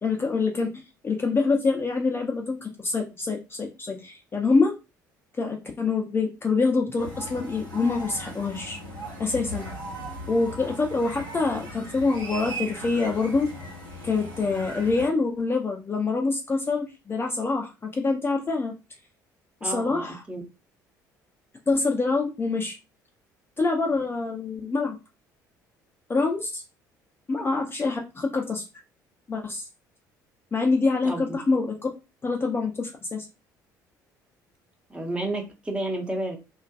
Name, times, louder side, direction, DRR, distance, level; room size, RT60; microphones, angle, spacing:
voice 1, 0.0-4.7 5.4-8.8 9.2-9.7 10.3-13.5 14.0-18.7 19.6-20.2 21.7-22.8 23.6-25.0 26.1-26.6 27.3-28.6 29.3-29.6 30.5-31.8 32.2-33.3, left 3 dB, 20° left, 1 dB, 0.5 m, -25 dB
sound 1, 7.0-15.1, right 1 dB, 80° right, 1.2 m, -38 dB
voice 2, 19.6-20.4 31.0-31.4 34.9-36.4, right 1 dB, 10° right, 1 dB, 0.8 m, -31 dB
2.5 x 2.2 x 2.4 m, 0.27 s
figure-of-eight pair, 55°, 10 cm